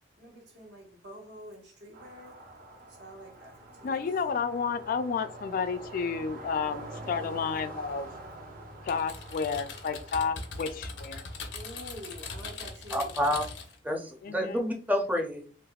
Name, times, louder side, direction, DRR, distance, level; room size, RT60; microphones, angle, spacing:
voice 1, 0.2-2.4 3.0-3.5 3.8-4.0 11.5-13.1, equal, 75° right, 0 dB, 1.2 m, -47 dB
sound 1, 1.9-12.2, right 1 dB, 55° right, 0.7 m, -46 dB
voice 2, 3.8-8.1 8.8-11.2 14.2-14.6, left 5 dB, 50° left, 10 dB, 0.3 m, -31 dB
Typing, 8.9-13.8, left 4 dB, 90° left, 0.8 m, -40 dB
voice 3, 12.9-13.4 13.8-15.5, equal, 10° right, 2 dB, 0.5 m, -29 dB
3.3 x 2.9 x 2.3 m, 0.40 s
head